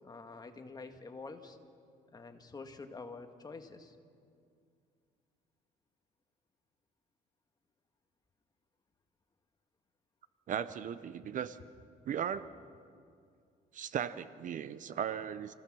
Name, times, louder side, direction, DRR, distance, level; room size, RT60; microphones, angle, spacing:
voice 1, 0.0-1.6 2.1-4.0 11.1-11.2, left 3 dB, 25° left, 6 dB, 1.6 m, -47 dB
voice 2, 10.5-11.6 12.1-12.5 13.7-15.5, right 8 dB, 50° right, 14 dB, 0.7 m, -37 dB
28.5 x 16.0 x 6.2 m, 2.3 s
cardioid pair, 110°, 17 cm